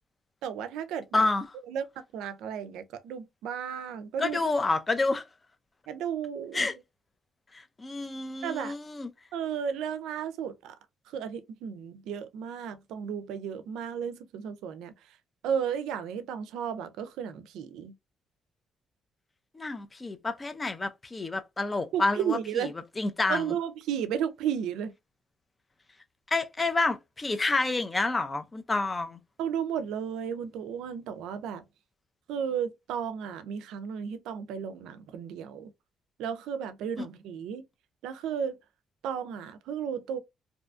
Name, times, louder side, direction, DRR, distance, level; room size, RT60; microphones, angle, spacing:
voice 1, 0.4-1.3 1.7-1.8 2.1-4.4 5.9-6.7 8.4-8.8 9.3-10.8 11.1-14.9 15.4-17.9 21.9-22.8 23.3-24.9 29.4-31.6 32.3-35.7 36.2-37.7 38.0-38.6 39.0-40.2, right 8 dB, 90° right, 0.4 m, -33 dB
voice 2, 1.1-1.5 4.2-5.2 6.5-6.7 7.5-9.1 19.5-22.4 23.0-23.4 26.3-29.2 37.0-37.1, left 3 dB, 25° left, 0.4 m, -28 dB
2.6 x 2.2 x 2.4 m
cardioid pair, 90°, 0 cm